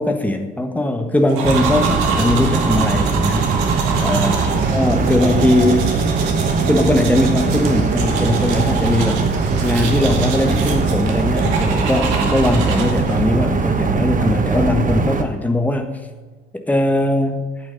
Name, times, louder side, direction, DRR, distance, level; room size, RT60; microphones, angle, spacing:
voice 1, 0.0-4.4 4.7-6.0 6.4-9.2 9.6-16.0 16.7-17.5, left 1 dB, 5° left, 5 dB, 1.4 m, -20 dB
sound 1, 1.3-13.3, right 5 dB, 60° right, 2.1 m, -27 dB
sound 2, 1.4-15.2, right 4 dB, 20° right, 1.3 m, -20 dB
12.0 x 8.8 x 5.3 m, 1.3 s
figure-of-eight pair, 65°, 36 cm